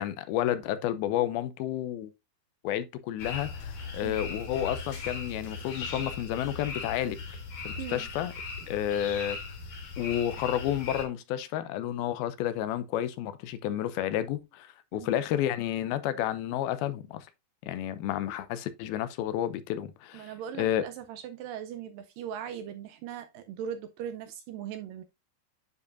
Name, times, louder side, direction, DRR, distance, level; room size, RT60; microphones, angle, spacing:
voice 1, 0.0-2.1 2.6-7.2 7.7-8.3 8.7-9.4 10.0-17.3 17.6-20.3 20.6-20.8, left 11 dB, 80° left, 2.5 m, -31 dB
sound 1, 3.2-11.1, left 4 dB, 55° left, 3.8 m, -38 dB
voice 2, 7.8-8.1 14.9-15.1 20.1-25.0, right 9 dB, 80° right, 2.1 m, -39 dB
9.5 x 5.0 x 2.5 m
omnidirectional pair, 4.4 m